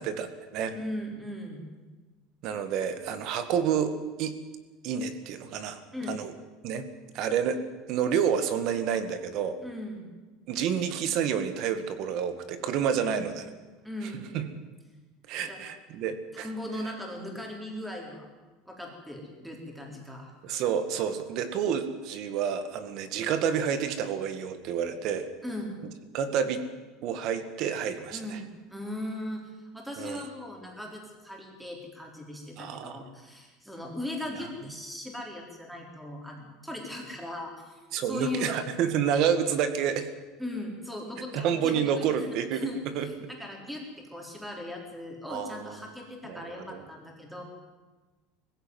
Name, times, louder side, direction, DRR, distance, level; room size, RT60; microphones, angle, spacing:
voice 1, 0.0-0.8 2.4-4.4 4.8-5.8 6.1-6.3 6.6-6.8 7.1-7.6 7.9-9.6 10.5-13.4 14.0-14.5 15.3-16.5 20.4-25.3 26.1-26.6 27.0-28.4 30.0-30.2 32.6-33.0 37.9-40.1 41.3-42.7 42.9-43.3 45.3-45.8 46.3-46.8, right 8 dB, 50° right, 10 dB, 2.0 m, -29 dB
voice 2, 0.7-1.6 5.9-6.2 9.6-10.1 13.0-13.2 13.8-14.3 15.5-15.6 16.3-18.3 18.6-20.3 25.4-25.8 28.1-29.5 29.7-38.6 40.4-42.8 43.3-47.4, left 1 dB, 5° right, 0 dB, 4.0 m, -38 dB
20.5 x 15.5 x 9.5 m, 1.2 s
cardioid pair, 155°, 0 cm